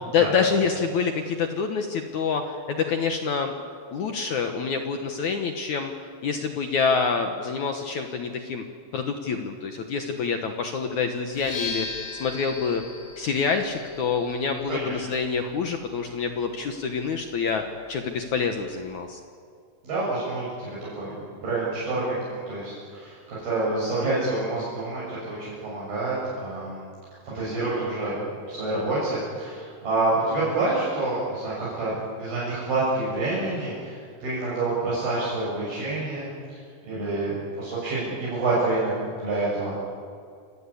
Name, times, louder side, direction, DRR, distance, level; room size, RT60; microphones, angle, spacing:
voice 1, 0.0-3.5 3.9-8.6 8.9-12.8 13.2-17.6 17.9-19.2, left 5 dB, 65° left, 5 dB, 2.1 m, -27 dB
sound 1, 11.3-19.0, left 4 dB, 80° left, 7.1 m, -40 dB
voice 2, 14.7-15.0 19.8-26.9 27.3-28.1 28.5-38.9 39.2-39.8, right 2 dB, 60° right, -7 dB, 8.5 m, -28 dB
28.0 x 18.5 x 8.5 m, 2.3 s
omnidirectional pair, 4.8 m